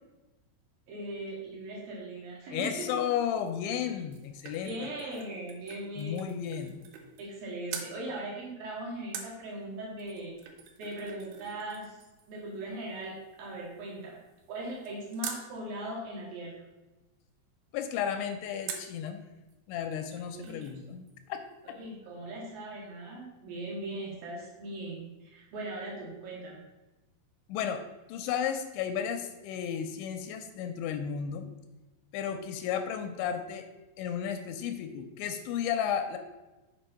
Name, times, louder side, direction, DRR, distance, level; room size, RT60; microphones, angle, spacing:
voice 1, 0.9-2.9 4.6-6.3 7.2-10.4 10.8-12.0 12.3-14.2 14.5-16.5 20.3-20.9 21.6-26.6, right 1 dB, 65° right, -3 dB, 2.9 m, -39 dB
voice 2, 2.5-4.9 6.0-6.9 17.7-19.2 19.7-21.4 21.7-21.8 27.5-27.8 28.1-31.5 32.1-33.6 34.0-36.2, left 8 dB, 85° left, 7 dB, 2.8 m, -33 dB
sound 1, 3.8-7.4 7.7-8.0 9.1-15.5 18.7-19.0 19.5-19.6 19.8-20.8 21.1-21.2, right 7 dB, 80° right, 3.1 m, -46 dB
7.0 x 5.0 x 5.6 m, 1.1 s
omnidirectional pair, 5.4 m